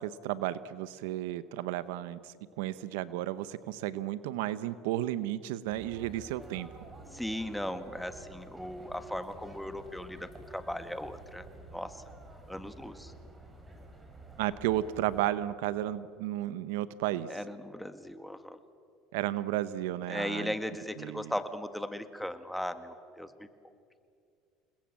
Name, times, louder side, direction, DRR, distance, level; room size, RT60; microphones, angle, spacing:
voice 1, 0.0-6.7 14.4-17.3 19.1-20.5 21.0-21.3, right 13 dB, 85° right, 15 dB, 0.9 m, -33 dB
sound 1, 5.7-15.2, right 2 dB, 20° right, 4.9 m, -51 dB
voice 2, 7.1-11.5 11.7-12.0 12.5-13.1 17.3-18.6 20.1-23.5, left 1 dB, 5° left, 9 dB, 1.8 m, -37 dB
sound 2, 7.3-8.8, right 4 dB, 50° right, 7.9 m, -53 dB
28.5 x 20.5 x 7.6 m, 2.3 s
supercardioid pair, 100°, 0 cm